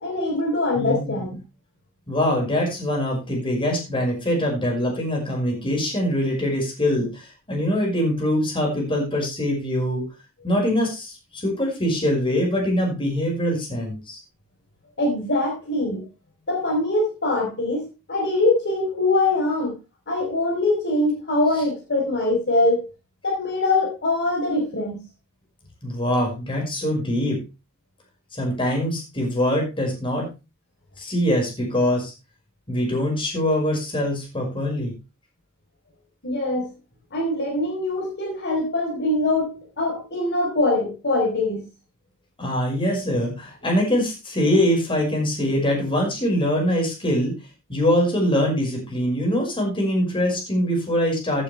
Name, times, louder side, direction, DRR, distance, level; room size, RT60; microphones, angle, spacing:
voice 1, 0.0-1.4 15.0-16.1 16.5-19.8 20.1-22.9 23.2-25.0 36.2-36.7 37.1-41.7, left 2 dB, 55° left, 0 dB, 3.8 m, -23 dB
voice 2, 0.8-1.2 2.1-10.0 10.4-14.2 25.8-27.4 28.3-30.3 31.0-32.1 32.7-34.9 42.4-47.4 47.7-51.4, left 1 dB, 25° left, 0 dB, 5.5 m, -23 dB
14.5 x 9.0 x 3.4 m, 0.28 s
head